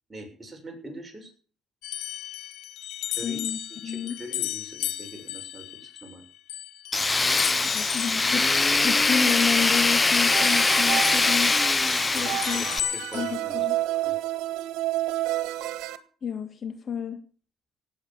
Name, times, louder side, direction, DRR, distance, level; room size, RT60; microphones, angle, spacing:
voice 1, 0.1-1.3 3.2-3.4 3.7-6.2 12.1-13.7 14.0-14.2, right 1 dB, 15° right, 1 dB, 6.8 m, -42 dB
sound 1, 1.8-10.7 11.0-13.3, left 13 dB, 85° left, 1.2 m, -35 dB
voice 2, 3.2-4.2 7.6-8.4 8.8-11.5 12.1-12.6 13.1-13.8 16.2-17.2, left 7 dB, 45° left, 9 dB, 1.6 m, -30 dB
Tools, 6.9-12.8, left 3 dB, 20° left, 0.6 m, -22 dB
sound 2, 10.3-16.0, right 15 dB, 80° right, 1.5 m, -30 dB
17.5 x 8.6 x 7.3 m, 0.43 s
cardioid pair, 90°, 0 cm